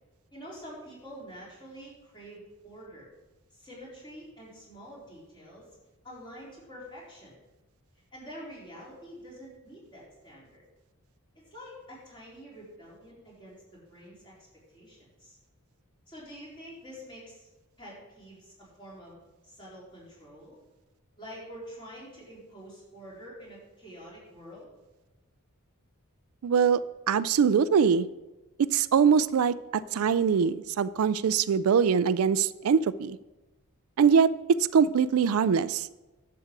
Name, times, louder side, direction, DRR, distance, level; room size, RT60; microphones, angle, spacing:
voice 1, 0.3-3.1 3.5-5.7 6.0-7.4 8.1-10.6 11.5-14.3 14.7-15.4 16.1-17.5 17.8-19.2 19.4-20.6 21.2-24.7, equal, 20° left, -6 dB, 4.1 m, -47 dB
voice 2, 26.4-26.8 27.1-28.1 28.7-33.2 34.0-34.3 34.7-35.9, right 6 dB, 70° right, 17 dB, 0.4 m, -23 dB
11.0 x 7.8 x 4.7 m, 1.1 s
head